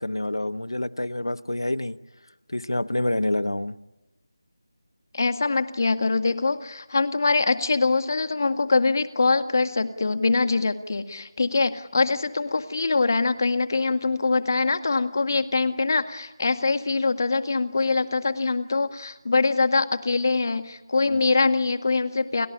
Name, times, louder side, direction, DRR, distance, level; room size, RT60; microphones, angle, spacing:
voice 1, 0.0-2.0 2.5-3.8 21.1-21.2, left 1 dB, 90° left, 14 dB, 1.2 m, -27 dB
voice 2, 5.1-22.5, left 3 dB, 50° left, 9 dB, 1.9 m, -23 dB
30.0 x 18.0 x 9.9 m, 1.0 s
figure-of-eight pair, 165°, 2 cm